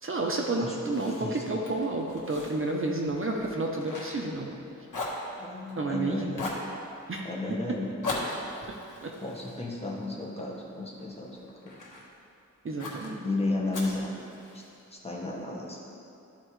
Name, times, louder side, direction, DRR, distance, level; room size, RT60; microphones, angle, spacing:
voice 1, 0.0-4.5 5.8-6.4 7.1-7.2 9.0-9.1 12.6-13.2, right 2 dB, 45° right, 0 dB, 0.7 m, -30 dB
Fire, 0.9-4.6 4.9-5.9 6.3-6.7 8.0-10.4 11.0-12.1 12.8-13.1 13.7-14.8, left 2 dB, 80° left, 1.3 m, -38 dB
voice 2, 1.1-1.6 5.4-6.4 7.2-7.9 9.2-11.4 11.6-11.8 13.2-14.1 14.5-14.6 14.9-15.8, left 2 dB, 20° left, -4 dB, 1.3 m, -33 dB
13.0 x 4.4 x 3.2 m, 2.6 s
wide cardioid pair, 85°, 31 cm